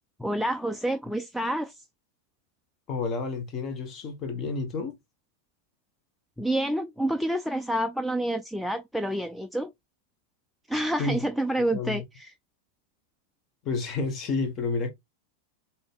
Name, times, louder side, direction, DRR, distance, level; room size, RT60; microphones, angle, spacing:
voice 1, 0.2-1.8 6.4-9.7 10.7-12.3, right 1 dB, ahead, 0.3 m, -28 dB
voice 2, 2.9-5.0 11.0-11.2 11.7-12.0 13.6-14.9, left 4 dB, 30° left, 1.2 m, -30 dB
3.9 x 2.7 x 3.3 m
figure-of-eight pair, 90°, 0 cm